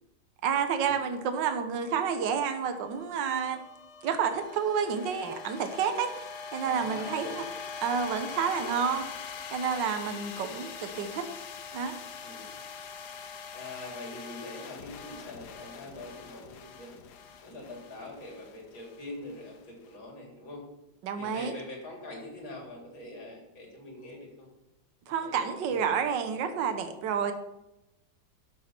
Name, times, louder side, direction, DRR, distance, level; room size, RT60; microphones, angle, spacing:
voice 1, 0.4-3.6 4.0-6.1 6.5-7.2 7.8-9.1 9.5-11.3 11.7-12.0 21.0-21.6 25.1-27.3, right 7 dB, 70° right, 7 dB, 1.6 m, -29 dB
sound 1, 1.6-19.9, left 6 dB, 65° left, 1.3 m, -43 dB
voice 2, 6.6-7.4 8.5-8.7 10.0-10.2 12.2-12.6 13.5-16.9 17.4-20.6 21.1-24.5 25.1-25.8 26.3-26.5, left 2 dB, 90° left, -1 dB, 4.1 m, -44 dB
12.0 x 6.3 x 6.0 m, 0.91 s
omnidirectional pair, 2.1 m